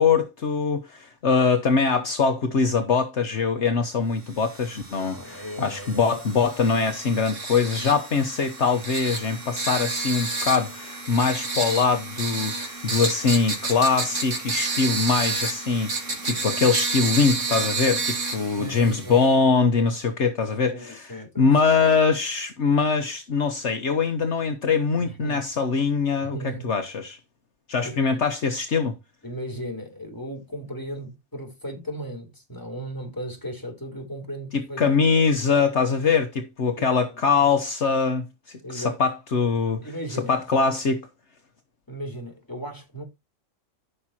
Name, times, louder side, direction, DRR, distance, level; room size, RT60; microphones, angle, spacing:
voice 1, 0.0-27.2 27.7-28.9 34.5-39.8 40.1-41.1, left 5 dB, 60° left, 1.4 m, -23 dB
sound 1, 4.4-19.3, right 3 dB, 70° right, 2.8 m, -30 dB
voice 2, 5.0-6.1 18.6-19.2 20.6-21.5 25.0-25.5 26.3-26.7 27.8-28.2 29.2-35.1 36.7-36.8 37.1-37.2 38.6-39.0 39.8-40.4 41.9-43.0, right 1 dB, 15° left, 3.9 m, -36 dB
14.5 x 6.2 x 2.9 m
omnidirectional pair, 1.4 m